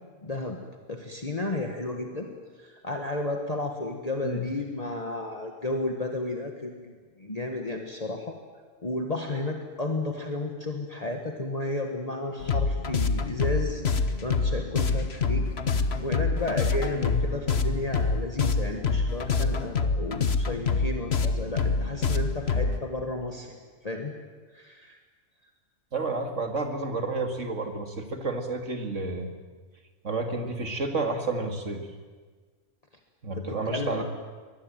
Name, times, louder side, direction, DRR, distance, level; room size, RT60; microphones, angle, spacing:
voice 1, 0.2-0.6 0.9-2.3 2.6-8.4 8.8-23.6 23.8-24.1 24.5-25.0 33.4-34.0, left 2 dB, 30° left, 3 dB, 1.7 m, -33 dB
sound 1, 12.4-22.8, left 4 dB, 55° left, 1.4 m, -26 dB
voice 2, 25.9-29.3 30.0-31.8 33.2-34.0, right 3 dB, 65° right, 5 dB, 2.7 m, -30 dB
23.5 x 20.0 x 9.1 m, 1.5 s
omnidirectional pair, 1.4 m